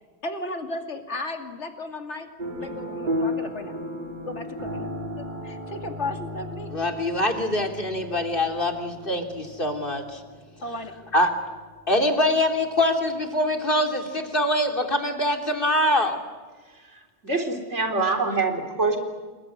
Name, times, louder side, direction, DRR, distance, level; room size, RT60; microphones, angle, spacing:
voice 1, 0.2-2.3 2.6-3.8 4.2-4.9 5.2-6.7 10.6-10.9, left 2 dB, 75° left, 6 dB, 2.7 m, -34 dB
sound 1, 2.4-13.1, equal, 40° right, 3.7 m, -35 dB
voice 2, 6.7-10.2 11.1-11.3 11.9-16.2, left 1 dB, 50° left, 5 dB, 3.3 m, -24 dB
voice 3, 16.6-19.0, right 3 dB, 85° right, 4 dB, 3.9 m, -26 dB
28.0 x 21.0 x 9.7 m, 1.4 s
omnidirectional pair, 1.2 m